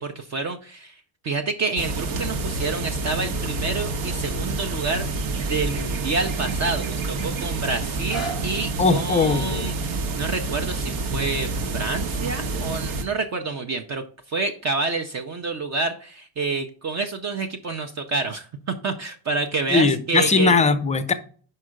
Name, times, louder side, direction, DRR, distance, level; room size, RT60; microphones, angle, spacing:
voice 1, 0.0-5.1 5.5-20.6, right 3 dB, 35° right, 6 dB, 0.5 m, -28 dB
sound 1, 1.8-13.0, right 3 dB, 80° right, 1.2 m, -28 dB
sound 2, 8.1-13.9 14.6-14.7, right 4 dB, ahead, 1.1 m, -41 dB
voice 2, 8.8-9.6 19.7-21.1, left 4 dB, 15° left, 12 dB, 0.4 m, -19 dB
5.5 x 4.8 x 6.3 m, 0.43 s
cardioid pair, 165°, 46 cm